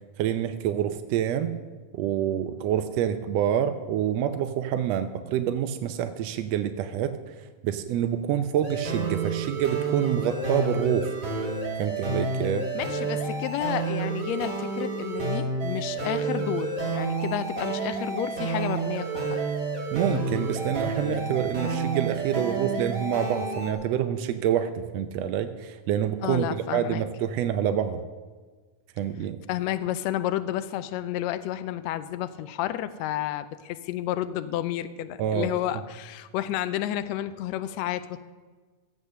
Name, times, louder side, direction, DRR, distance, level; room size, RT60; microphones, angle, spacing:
voice 1, 0.2-1.5 1.9-11.1 11.8-12.7 19.9-28.0 29.0-29.4 35.2-35.5, right 10 dB, 80° right, 8 dB, 1.5 m, -27 dB
sound 1, 8.6-23.7, right 3 dB, 50° right, 3.5 m, -30 dB
voice 2, 12.7-19.4 26.2-27.0 29.5-38.2, left 12 dB, 80° left, 11 dB, 1.6 m, -31 dB
14.5 x 8.4 x 6.7 m, 1.4 s
omnidirectional pair, 3.6 m